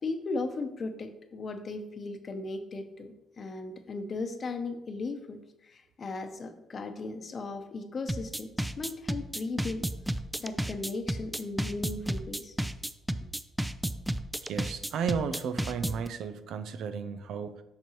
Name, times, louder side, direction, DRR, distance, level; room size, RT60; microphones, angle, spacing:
voice 1, 0.0-9.8 10.4-12.5, left 3 dB, 45° left, 7 dB, 0.8 m, -37 dB
sound 1, 8.1-16.1, right 1 dB, 5° right, 0.4 m, -32 dB
voice 2, 14.4-17.6, right 6 dB, 75° right, 11 dB, 0.5 m, -34 dB
7.3 x 5.3 x 3.1 m, 0.89 s
cardioid pair, 90°, 0 cm